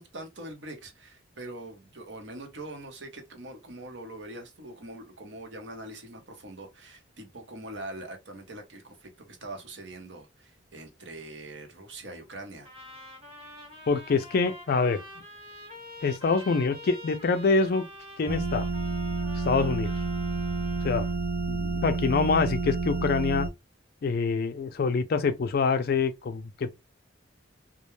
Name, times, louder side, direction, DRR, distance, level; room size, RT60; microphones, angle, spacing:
voice 1, 0.0-12.7, right 1 dB, 70° right, 0.8 m, -43 dB
Trumpet, 12.6-21.2, left 1 dB, 35° right, 1.0 m, -46 dB
voice 2, 13.9-15.0 16.0-17.8 18.2-18.7 19.4-19.9 20.8-21.1 21.5-23.5 24.0-26.7, left 4 dB, 55° left, 0.4 m, -25 dB
sound 1, 18.3-23.5, right 3 dB, 50° right, 0.4 m, -30 dB
2.3 x 2.1 x 3.0 m
head